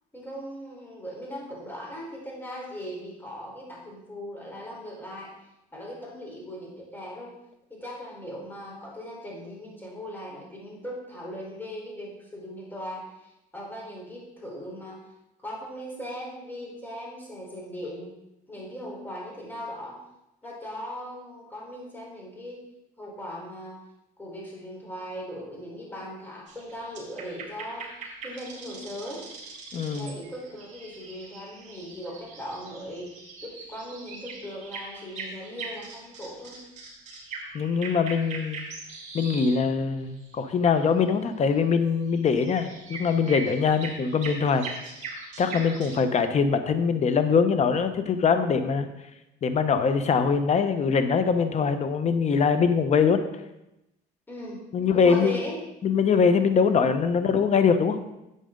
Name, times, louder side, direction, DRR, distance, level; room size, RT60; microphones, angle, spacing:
voice 1, 0.1-5.3 5.7-7.3 7.7-15.0 15.4-18.1 18.5-20.0 20.4-22.6 23.0-23.8 24.2-27.9 28.2-29.3 29.9-36.6 54.3-54.6 54.9-55.6, equal, 10° left, -4 dB, 4.1 m, -39 dB
sound 1, 26.5-39.7 40.0-40.3 42.1-46.0, right 4 dB, 45° right, 3.9 m, -41 dB
voice 2, 29.7-30.2 37.5-38.6 39.1-44.7 45.4-48.9 49.4-53.2 54.7-55.4 55.8-58.0, left 5 dB, 40° left, 9 dB, 1.0 m, -23 dB
11.0 x 8.2 x 3.8 m, 0.90 s
cardioid pair, 110°, 17 cm